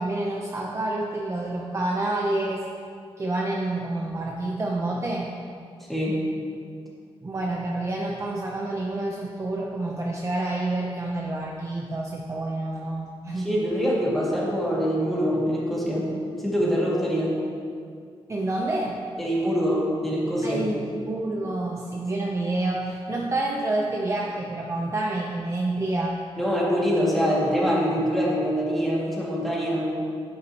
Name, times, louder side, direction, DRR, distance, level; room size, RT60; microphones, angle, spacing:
voice 1, 0.0-2.6 3.2-5.3 7.2-13.5 18.3-19.0 20.4-26.2, right 2 dB, 30° right, -2 dB, 0.7 m, -28 dB
voice 2, 5.9-6.2 13.4-16.1 16.4-17.4 19.2-20.6 26.4-29.9, equal, ahead, -6 dB, 2.3 m, -24 dB
10.0 x 9.3 x 3.0 m, 2.3 s
wide cardioid pair, 130°, 10 cm